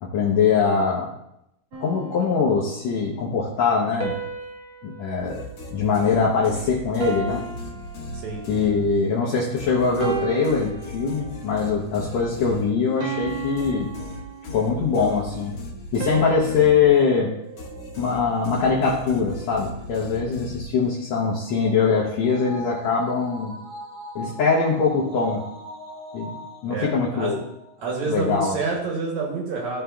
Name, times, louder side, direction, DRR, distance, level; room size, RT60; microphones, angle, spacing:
voice 1, 0.0-1.1 1.8-4.1 4.8-5.4 5.7-7.4 8.5-13.9 14.5-15.5 15.9-17.3 18.0-23.5 24.1-25.4 26.1-26.3 26.6-27.4 28.1-28.5, left 5 dB, 75° left, -4 dB, 1.5 m, -22 dB
sound 1, 1.7-3.0 4.0-6.5 7.0-8.7 9.3-9.5 10.0-11.5 12.0-12.3 13.0-14.9 16.0-18.4, right 6 dB, 85° right, 1.5 m, -35 dB
sound 2, 5.2-9.2 9.6-17.2 17.6-21.0, left 2 dB, 55° left, 2.1 m, -37 dB
voice 2, 8.1-8.4 26.7-27.4 27.8-29.8, right 3 dB, 65° right, -2 dB, 2.1 m, -28 dB
sound 3, 21.2-27.9 28.3-28.4, left 1 dB, 10° right, 1.3 m, -40 dB
14.0 x 4.9 x 2.3 m, 0.82 s
omnidirectional pair, 4.2 m